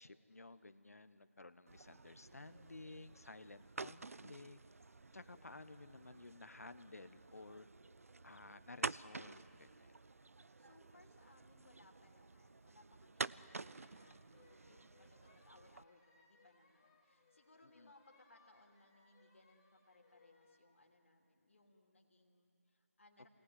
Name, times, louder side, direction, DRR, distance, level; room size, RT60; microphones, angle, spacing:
voice 1, 0.0-4.6 5.1-7.7 8.2-9.9 17.8-17.9, left 2 dB, 70° left, 12 dB, 1.1 m, -55 dB
sound 1, 1.7-15.8, right 3 dB, 65° right, 0.5 m, -50 dB
voice 2, 10.6-23.3, left 2 dB, 55° left, 2 dB, 3.1 m, -67 dB
sound 2, 13.2-20.7, left 3 dB, 20° left, 1.9 m, -71 dB
27.0 x 19.0 x 9.7 m, 2.8 s
figure-of-eight pair, 165°, 8 cm